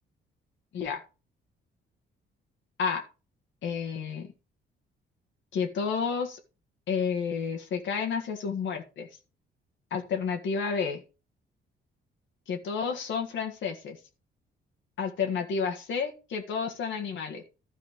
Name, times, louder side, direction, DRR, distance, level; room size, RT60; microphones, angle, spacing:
voice 1, 3.6-4.3 5.5-6.4 6.9-9.1 9.9-11.0 12.5-14.0 15.0-17.4, left 6 dB, 70° left, 3 dB, 1.7 m, -30 dB
12.5 x 4.2 x 5.2 m, 0.33 s
cardioid pair, 90°, 20 cm